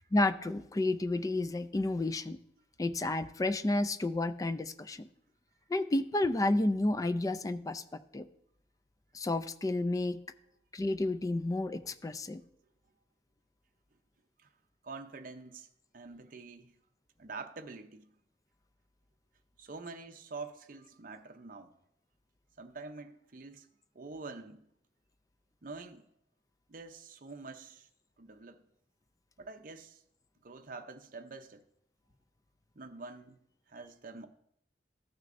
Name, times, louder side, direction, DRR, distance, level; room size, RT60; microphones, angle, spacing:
voice 1, 0.1-2.4 2.8-5.1 5.7-7.8 8.1-8.2 9.1-10.2 10.7-12.4, left 2 dB, 20° left, 0.3 m, -31 dB
voice 2, 14.8-15.7 15.9-16.7 17.2-18.1 19.6-21.7 22.6-23.7 23.9-24.7 25.6-26.0 26.7-27.9 28.2-28.6 29.4-30.0 30.4-31.6 32.8-33.4 33.7-34.3, right 3 dB, 50° right, 0.6 m, -46 dB
14.0 x 6.4 x 2.6 m
head